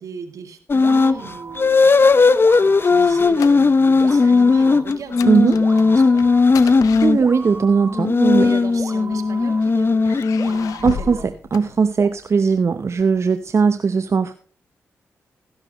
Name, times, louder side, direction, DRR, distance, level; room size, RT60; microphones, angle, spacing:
voice 1, 0.0-1.9 2.6-6.3 8.4-11.3, right 5 dB, 75° right, 7 dB, 2.0 m, -37 dB
sound 1, 0.7-1.2 1.6-7.2 7.9-10.9, left 4 dB, 40° left, 0.7 m, -16 dB
sound 2, 0.8-1.8 2.4-3.5 4.0-4.8 5.6-6.4 7.2-8.0 8.8-9.6 10.4-11.2 12.0-12.1, right 3 dB, 35° right, 2.0 m, -37 dB
sound 3, 2.1-4.0 4.3-4.5 4.9-7.7 8.6-9.4 10.0-12.3, left 9 dB, 90° left, 0.6 m, -35 dB
voice 2, 5.3-5.6 6.7-8.5 10.8-14.3, right 5 dB, 55° right, 10 dB, 0.8 m, -18 dB
15.0 x 11.5 x 3.1 m, 0.40 s
supercardioid pair, 45°, 6 cm